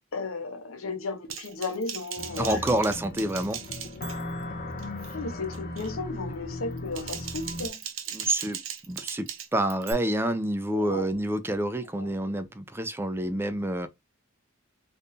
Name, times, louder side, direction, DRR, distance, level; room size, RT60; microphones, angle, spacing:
voice 1, 0.1-2.6 4.0-4.1 5.1-7.8 10.7-11.1 12.0-12.1, left 3 dB, 85° left, 0.8 m, -34 dB
Typing, 1.3-4.5 4.8-5.2 5.5-5.9 6.7-9.9, right 9 dB, 70° right, 0.7 m, -39 dB
sound 1, 2.2-7.7, left 2 dB, 45° left, 0.7 m, -37 dB
voice 2, 2.4-3.6 8.1-13.9, right 1 dB, 10° right, 0.4 m, -28 dB
3.5 x 2.5 x 2.7 m
head